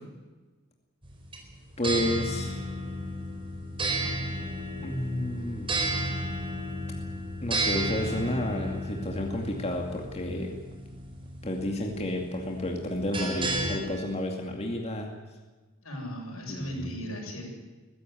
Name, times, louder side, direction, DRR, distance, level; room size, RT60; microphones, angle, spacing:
sound 1, 1.0-13.8, right 1 dB, 25° right, 4.4 m, -33 dB
voice 1, 1.8-2.6 4.8-5.7 7.4-10.6 11.4-15.1 16.5-16.9, left 1 dB, 30° left, 1 dB, 2.3 m, -31 dB
voice 2, 15.8-17.4, equal, 85° left, 1 dB, 7.1 m, -37 dB
21.5 x 15.5 x 9.5 m, 1.3 s
head